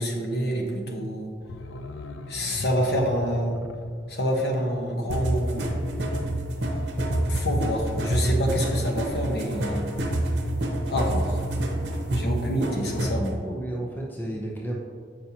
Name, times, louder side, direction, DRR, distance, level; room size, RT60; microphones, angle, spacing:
voice 1, 0.0-1.3 2.3-3.6 4.1-5.7 7.3-9.9 10.9-11.4 12.1-13.4, equal, 60° left, 0 dB, 1.0 m, -27 dB
sound 1, 1.4-6.1 6.4-6.5, left 2 dB, 85° left, 0.4 m, -40 dB
sound 2, 5.1-13.3, right 1 dB, 65° right, 0.9 m, -27 dB
voice 2, 12.6-12.9 13.3-14.8, right 1 dB, 10° left, -2 dB, 0.6 m, -33 dB
8.3 x 5.3 x 2.9 m, 2.1 s
head